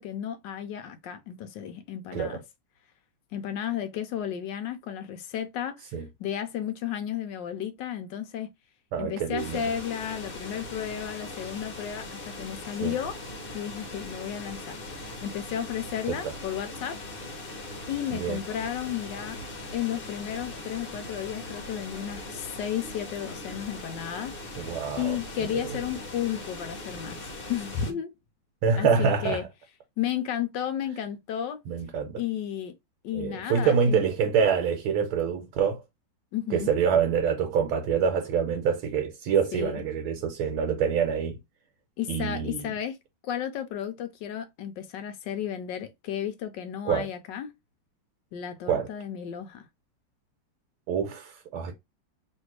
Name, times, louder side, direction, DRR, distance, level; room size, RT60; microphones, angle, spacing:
voice 1, 0.0-2.4 3.3-5.9 6.2-8.5 9.0-13.2 13.5-14.8 15.2-17.0 17.9-19.4 19.7-28.1 28.8-29.4 30.0-31.6 32.2-32.7 33.0-34.0 36.3-36.7 39.5-39.8 42.0-43.0 43.2-47.5 48.3-49.7, left 10 dB, 75° left, 1.1 m, -33 dB
voice 2, 8.9-9.6 12.8-13.0 16.1-16.3 18.1-18.4 24.6-25.8 28.6-29.4 31.7-32.2 33.1-35.8 36.5-41.4 42.1-42.7 46.9-47.1 48.7-48.9 50.9-51.7, right 6 dB, 75° right, 1.6 m, -26 dB
sound 1, 9.4-27.9, left 2 dB, 40° left, 0.8 m, -40 dB
3.3 x 2.9 x 4.5 m
omnidirectional pair, 2.4 m